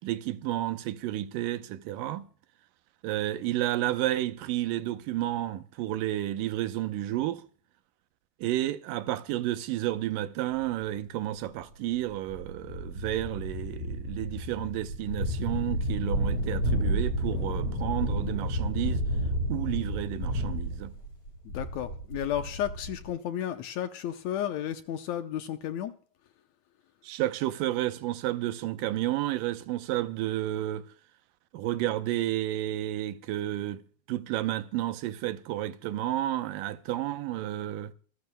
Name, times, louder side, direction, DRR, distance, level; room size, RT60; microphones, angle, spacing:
voice 1, 0.0-2.3 3.0-7.4 8.4-19.0 19.5-20.9 27.0-30.8 31.5-33.8 34.1-37.9, right 14 dB, 85° right, 2.5 m, -31 dB
sound 1, 12.1-23.1, equal, 50° left, 8.2 m, -31 dB
voice 2, 21.5-25.9, left 10 dB, 70° left, 1.8 m, -33 dB
26.0 x 14.5 x 2.2 m
omnidirectional pair, 3.8 m